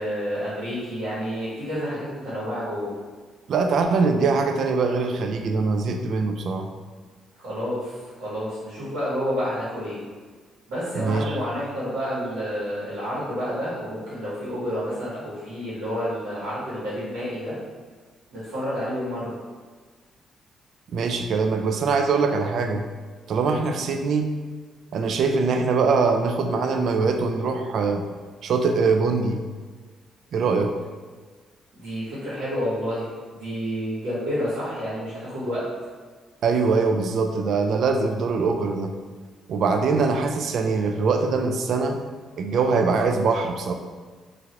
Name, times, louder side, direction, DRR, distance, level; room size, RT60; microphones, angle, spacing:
voice 1, 0.0-2.9 7.3-10.0 10.7-17.5 18.3-19.4 31.7-35.6, equal, 85° right, -10 dB, 1.2 m, -29 dB
voice 2, 3.5-6.7 10.9-11.4 20.9-22.9 23.3-24.4 24.9-28.0 28.4-29.4 30.3-30.7 36.4-38.9 39.5-42.0 42.4-43.7, right 4 dB, 65° right, 5 dB, 0.3 m, -22 dB
3.0 x 2.5 x 2.9 m, 1.4 s
cardioid pair, 90°, 0 cm